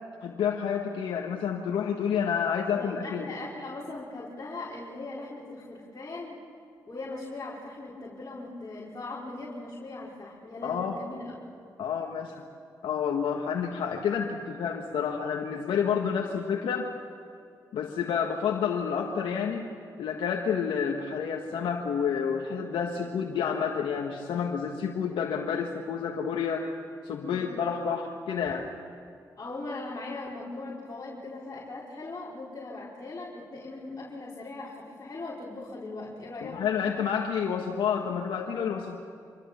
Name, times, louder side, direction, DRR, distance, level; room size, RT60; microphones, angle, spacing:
voice 1, 0.2-3.3 10.6-11.0 11.8-12.5 12.8-16.9 17.7-19.6 20.0-26.7 27.0-28.7 36.4-39.0, left 7 dB, 75° left, 1 dB, 1.6 m, -29 dB
voice 2, 2.7-6.4 6.9-11.3 13.5-13.6 22.9-23.1 27.2-27.5 29.4-36.6, left 2 dB, 35° left, -6 dB, 5.2 m, -39 dB
26.0 x 22.5 x 7.1 m, 2.4 s
supercardioid pair, 50°, 8 cm